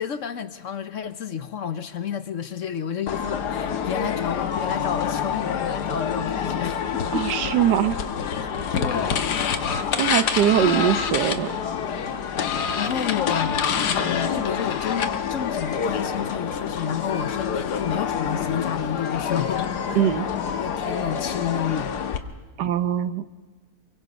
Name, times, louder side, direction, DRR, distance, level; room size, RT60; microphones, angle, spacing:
voice 1, 0.0-7.3 8.7-9.3 9.8-10.0 12.8-13.6 13.9-20.1 20.6-21.9, left 8 dB, 55° left, 12 dB, 1.0 m, -30 dB
sound 1, 3.1-22.2, left 7 dB, 75° left, 1.6 m, -27 dB
voice 2, 7.1-8.0 10.0-11.5 19.9-20.3 22.6-23.2, right 10 dB, 90° right, 13 dB, 1.4 m, -22 dB
24.5 x 23.5 x 5.3 m, 1.5 s
omnidirectional pair, 1.8 m